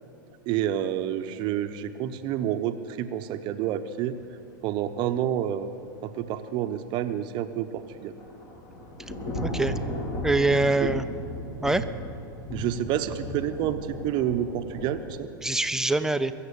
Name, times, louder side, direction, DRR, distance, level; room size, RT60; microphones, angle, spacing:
voice 1, 0.5-4.2 4.6-5.7 6.0-8.1 10.8-10.9 12.5-15.3, right 11 dB, 45° right, 9 dB, 0.8 m, -29 dB
Thunder / Rain, 7.8-15.1, left 1 dB, 35° left, 2.8 m, -35 dB
voice 2, 9.4-9.7 10.2-11.0 11.6-11.8 15.4-16.3, right 2 dB, 5° right, 10 dB, 0.7 m, -24 dB
22.0 x 7.5 x 8.3 m, 2.8 s
hypercardioid pair, 100°, 11 cm